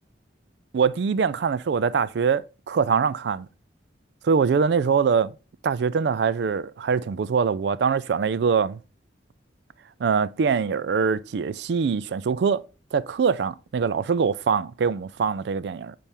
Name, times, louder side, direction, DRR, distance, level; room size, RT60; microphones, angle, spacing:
voice 1, 0.7-3.5 4.2-5.3 5.6-8.8 10.0-16.0, right 6 dB, 65° right, 0.3 m, -23 dB
8.9 x 4.2 x 3.4 m
head